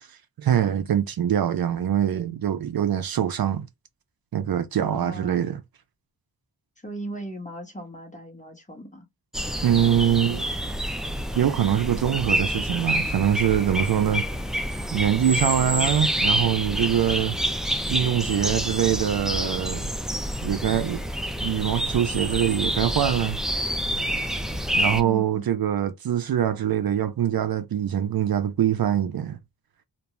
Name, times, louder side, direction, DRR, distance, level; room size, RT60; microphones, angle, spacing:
voice 1, 0.4-3.7 4.3-5.6 9.6-10.5 11.3-14.2 14.9-17.4 17.9-19.9 20.4-21.0 21.4-23.4 24.8-29.4, right 10 dB, 60° right, 0.5 m, -23 dB
voice 2, 4.8-5.5 6.8-9.1 24.9-25.5, right 1 dB, 20° left, 1.2 m, -37 dB
sound 1, 9.3-25.0, equal, ahead, 0.5 m, -27 dB
2.5 x 2.3 x 3.0 m
cardioid pair, 55°, 40 cm